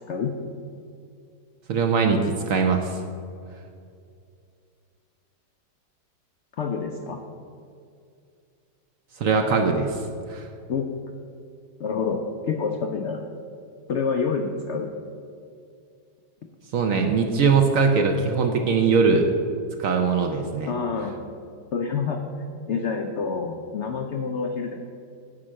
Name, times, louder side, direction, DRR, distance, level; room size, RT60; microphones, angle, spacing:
voice 1, 1.7-3.0 9.2-10.0 10.3-10.5 16.7-19.3 19.8-20.7, right 5 dB, 65° right, 4 dB, 0.9 m, -21 dB
voice 2, 6.6-7.2 10.7-10.9 11.8-13.2 13.9-14.9 20.7-21.2 21.7-22.2 22.7-24.8, left 5 dB, 75° left, 4 dB, 0.6 m, -27 dB
9.8 x 4.5 x 7.5 m, 2.4 s
omnidirectional pair, 1.9 m